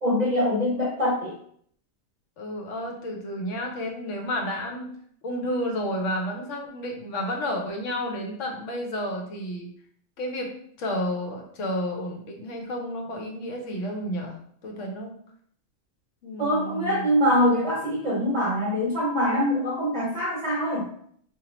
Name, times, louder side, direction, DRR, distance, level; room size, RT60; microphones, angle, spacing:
voice 1, 0.0-1.3 16.4-20.9, equal, 45° right, -2 dB, 0.6 m, -24 dB
voice 2, 2.4-4.9 5.2-9.7 10.2-10.5 10.8-15.2 16.2-17.1, equal, 75° left, 1 dB, 1.1 m, -31 dB
4.4 x 2.4 x 3.0 m, 0.64 s
omnidirectional pair, 1.3 m